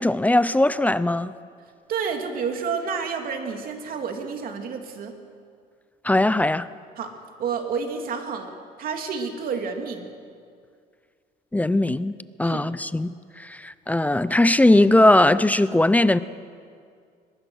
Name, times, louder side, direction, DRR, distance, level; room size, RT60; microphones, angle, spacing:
voice 1, 0.0-1.3 6.0-6.7 11.5-12.1 12.4-16.2, left 1 dB, 10° left, 0.5 m, -19 dB
voice 2, 1.9-5.1 7.0-7.1 7.4-10.1 12.4-12.7, right 5 dB, 60° right, 2.7 m, -30 dB
22.0 x 21.5 x 6.4 m
cardioid pair, 110°, 17 cm